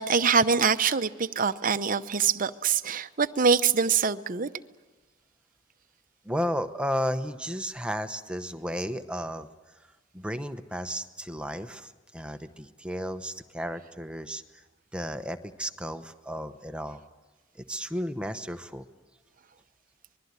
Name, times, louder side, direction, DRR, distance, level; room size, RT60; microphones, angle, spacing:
voice 1, 0.0-4.5, right 6 dB, 40° right, 11 dB, 0.8 m, -24 dB
voice 2, 6.2-9.5 10.1-14.6 14.9-17.0 17.5-18.8, equal, 5° right, 8 dB, 0.9 m, -33 dB
25.5 x 21.5 x 9.6 m, 1.3 s
head